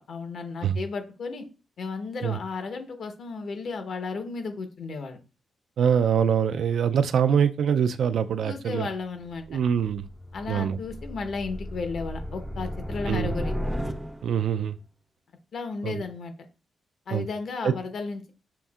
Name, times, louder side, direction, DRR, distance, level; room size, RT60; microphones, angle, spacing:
voice 1, 0.1-1.5 1.8-5.2 8.4-9.6 10.3-13.6 15.5-16.3 17.1-18.3, left 4 dB, 60° left, 0.9 m, -34 dB
voice 2, 5.8-8.9 9.5-10.1 10.5-10.8 13.1-13.3 14.2-14.8 15.8-16.0 17.1-17.2 17.6-17.7, right 8 dB, 70° right, 0.3 m, -24 dB
sound 1, 9.2-14.5, equal, 5° right, 0.4 m, -34 dB
6.7 x 2.6 x 2.3 m
cardioid pair, 105°, 0 cm